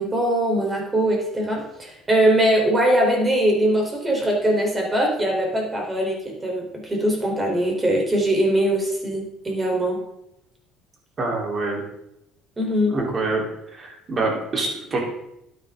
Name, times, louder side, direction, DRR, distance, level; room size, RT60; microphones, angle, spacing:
voice 1, 0.0-10.0 12.6-13.0, right 1 dB, 20° right, 0 dB, 4.1 m, -21 dB
voice 2, 11.2-11.8 12.9-13.5 13.7-15.0, right 3 dB, 35° right, -1 dB, 4.0 m, -25 dB
12.5 x 9.1 x 3.9 m, 0.81 s
cardioid pair, 105°, 0 cm